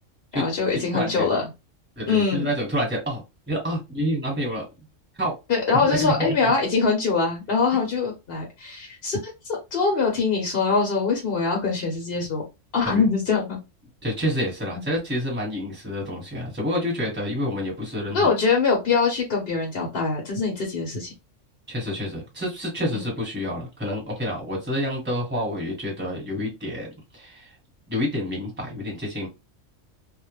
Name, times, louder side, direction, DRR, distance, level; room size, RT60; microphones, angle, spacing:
voice 1, 0.3-1.4 2.1-2.5 5.5-9.2 9.4-12.4 12.7-13.6 14.7-14.8 18.1-21.1 22.9-23.0, left 4 dB, 50° left, 1.0 m, -23 dB
voice 2, 0.9-1.3 2.0-3.2 3.5-4.6 5.2-5.3 5.8-6.5 12.8-13.0 14.0-18.3 21.7-26.9 27.1-27.5 27.9-29.3, equal, 10° right, 1.1 m, -28 dB
2.3 x 2.1 x 3.1 m
omnidirectional pair, 1.3 m